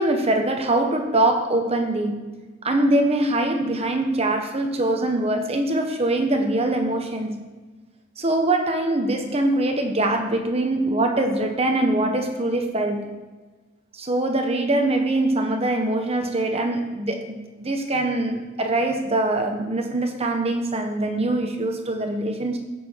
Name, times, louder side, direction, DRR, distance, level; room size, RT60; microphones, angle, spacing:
voice 1, 0.0-2.4 2.6-7.4 8.2-13.2 13.9-22.6, right 2 dB, 35° right, 1.2 m, -23 dB
16.0 x 6.8 x 4.7 m
head